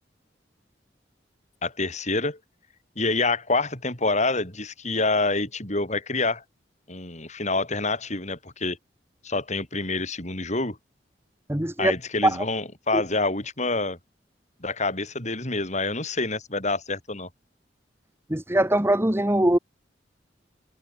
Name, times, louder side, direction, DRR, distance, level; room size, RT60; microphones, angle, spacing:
voice 1, 1.6-2.4 3.0-6.4 6.9-8.8 9.2-10.8 11.8-14.0 14.6-17.3, left 3 dB, 40° left, 7.3 m, -27 dB
voice 2, 11.5-11.9 12.2-12.4 12.9-13.0 18.3-19.6, right 1 dB, 15° right, 1.6 m, -22 dB
head